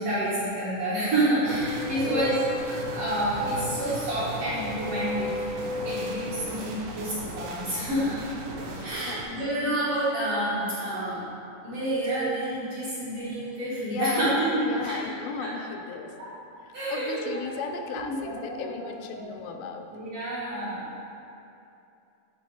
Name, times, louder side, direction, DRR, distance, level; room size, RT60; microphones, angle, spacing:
voice 1, 0.0-2.3 2.9-5.3 5.8-8.2 8.8-11.2 11.6-14.9 15.4-15.5 16.7-17.4 18.0-19.2 19.9-21.0, right 1 dB, 60° right, -10 dB, 1.7 m, -29 dB
sound 1, 1.5-9.2, equal, 80° right, 2.6 m, -34 dB
voice 2, 8.6-9.2 12.9-13.0 13.8-16.2 16.9-19.9, left 6 dB, 85° left, 5 dB, 2.4 m, -36 dB
9.4 x 4.3 x 4.6 m, 2.7 s
omnidirectional pair, 4.2 m